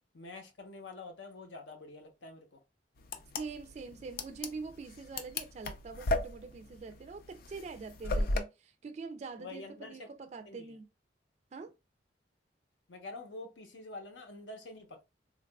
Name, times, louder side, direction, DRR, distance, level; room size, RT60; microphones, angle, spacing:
voice 1, 0.1-2.6 8.0-8.4 9.4-10.1 10.5-10.8 12.9-15.0, left 2 dB, 80° left, 0.8 m, -47 dB
sound 1, 3.0-8.4, left 2 dB, 55° left, 0.4 m, -35 dB
voice 2, 3.4-10.9 11.5-11.7, right 4 dB, 40° right, 0.3 m, -44 dB
3.7 x 2.3 x 2.2 m
head